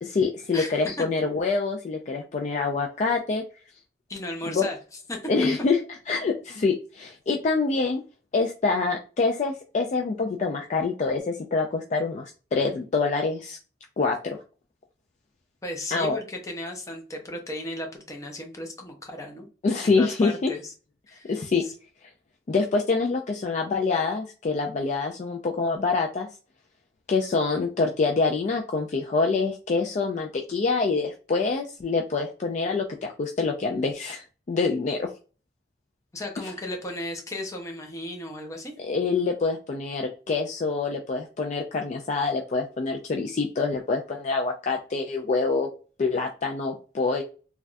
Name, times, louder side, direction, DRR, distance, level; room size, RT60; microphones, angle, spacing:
voice 1, 0.0-3.4 4.5-4.7 5.3-5.8 6.1-8.0 8.3-13.6 14.0-14.4 15.9-16.2 19.6-20.5 21.3-21.6 22.5-26.3 27.1-34.2 34.5-35.1 38.8-45.7 46.0-47.2, left 4 dB, 40° left, 2 dB, 0.3 m, -26 dB
voice 2, 0.5-1.0 4.1-4.8 5.1-5.2 15.6-19.5 19.8-20.7 21.1-21.3 21.6-21.7 36.1-38.7, left 1 dB, 20° left, 2 dB, 0.7 m, -35 dB
3.4 x 2.3 x 2.5 m, 0.35 s
head